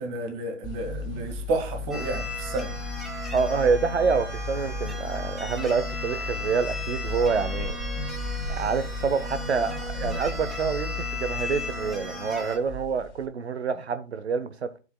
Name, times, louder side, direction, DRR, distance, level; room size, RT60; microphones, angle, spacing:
voice 1, 0.0-2.7, right 2 dB, 20° right, 1.6 m, -31 dB
sound 1, 0.6-13.3, left 2 dB, 25° left, 2.1 m, -35 dB
sound 2, 1.9-12.6, left 2 dB, ahead, 0.9 m, -36 dB
voice 2, 3.3-7.8 8.5-14.7, right 5 dB, 60° right, 0.9 m, -27 dB
11.0 x 8.2 x 2.3 m
figure-of-eight pair, 145°, 36 cm